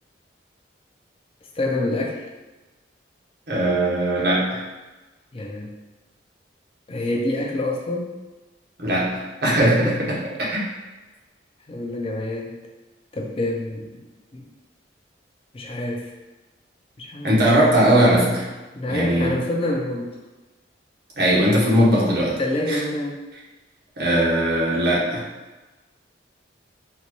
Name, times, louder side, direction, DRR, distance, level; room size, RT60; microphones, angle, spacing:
voice 1, 1.6-2.2 5.3-5.7 6.9-8.1 11.7-12.6 13.1-14.1 14.3-14.5 15.5-16.1 17.0-17.5 18.7-20.1 22.4-23.2, left 1 dB, 30° left, 0 dB, 0.4 m, -27 dB
voice 2, 3.5-4.6 8.8-10.6 17.2-18.5 18.9-19.3 21.2-22.4 22.7-22.8 24.0-25.2, right 1 dB, 60° right, -6 dB, 1.0 m, -19 dB
3.9 x 2.2 x 3.0 m, 1.2 s
head